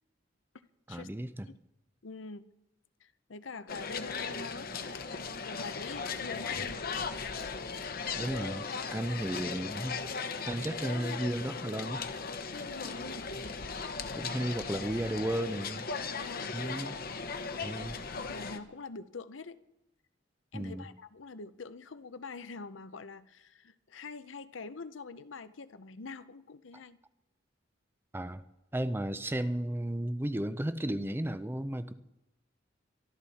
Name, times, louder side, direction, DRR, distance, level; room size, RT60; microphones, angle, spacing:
voice 1, 0.9-1.5 8.2-10.0 10.5-12.0 14.1-15.9 16.5-16.9 17.6-18.0 20.5-20.8 28.1-28.4 28.7-31.9, right 1 dB, 10° right, 12 dB, 0.6 m, -34 dB
voice 2, 2.0-2.5 3.0-7.1 12.7-13.3 14.4-14.6 16.2-16.6 18.1-19.6 20.5-27.0, left 4 dB, 80° left, 12 dB, 0.8 m, -45 dB
sound 1, 3.7-18.6, left 5 dB, 50° left, 1.1 m, -37 dB
23.0 x 13.0 x 4.3 m, 0.92 s
head